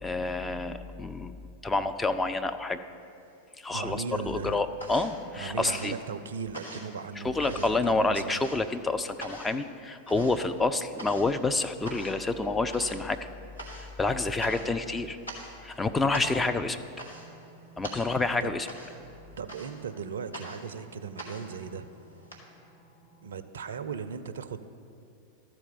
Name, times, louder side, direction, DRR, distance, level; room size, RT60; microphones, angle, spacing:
voice 1, 0.0-1.3 1.6-2.8 3.6-5.9 7.2-13.2 13.7-15.2 15.6-16.8 17.8-18.7, left 3 dB, 10° left, 8 dB, 0.4 m, -28 dB
sound 1, 3.0-3.8 4.1-22.4, right 1 dB, 85° left, 1.5 m, -44 dB
voice 2, 3.7-4.6 5.3-8.4 14.4-14.7 18.4-18.5 19.4-21.9 23.2-24.6, right 6 dB, 65° right, 11 dB, 0.4 m, -37 dB
sound 2, 17.0-23.2, right 2 dB, 50° left, 2.1 m, -57 dB
13.0 x 4.5 x 7.0 m, 2.6 s
figure-of-eight pair, 90°, 0 cm